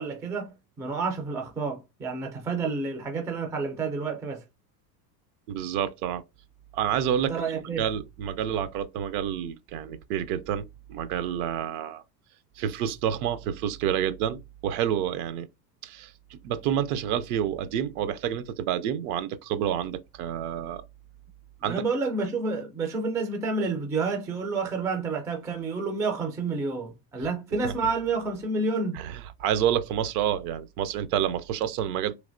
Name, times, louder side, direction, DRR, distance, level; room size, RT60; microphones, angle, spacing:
voice 1, 0.0-4.4 7.3-7.9 21.6-29.0, right 4 dB, 5° right, 0.3 m, -29 dB
voice 2, 5.5-6.2 6.7-7.3 7.8-12.0 12.6-15.5 15.8-20.8 21.6-21.9 27.6-27.7 29.0-29.1 29.4-32.2, right 10 dB, 65° right, 0.6 m, -28 dB
3.2 x 2.8 x 2.5 m
supercardioid pair, 115°, 48 cm